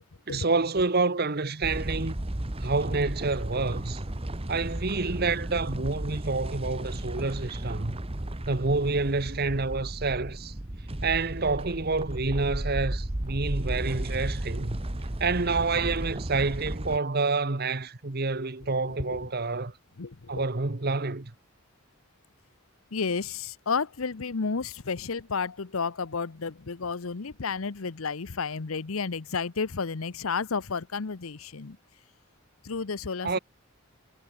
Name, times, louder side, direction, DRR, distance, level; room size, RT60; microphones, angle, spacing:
voice 1, 0.3-2.1 2.6-4.0 4.5-8.0 8.5-10.5 11.0-14.8 15.2-19.7 20.3-21.3 33.2-33.4, right 3 dB, 50° right, 1.2 m, -28 dB
sound 1, 1.6-17.0, right 1 dB, 25° right, 1.2 m, -34 dB
voice 2, 18.6-19.2 20.0-20.5 22.9-31.8 32.6-33.4, left 5 dB, 80° left, 0.8 m, -32 dB
head